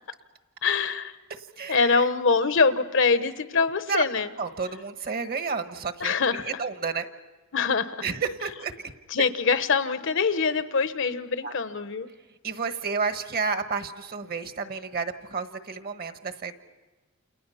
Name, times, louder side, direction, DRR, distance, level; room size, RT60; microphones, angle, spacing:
voice 1, 0.6-1.1 1.7-4.3 6.0-6.6 7.5-8.0 9.1-12.1, left 5 dB, 60° left, 12 dB, 1.0 m, -24 dB
voice 2, 1.6-2.0 3.9-4.0 4.4-6.1 6.6-7.1 8.0-8.7 11.4-11.5 12.4-16.5, right 5 dB, 45° right, 9 dB, 1.3 m, -30 dB
29.5 x 28.0 x 5.7 m, 1.2 s
head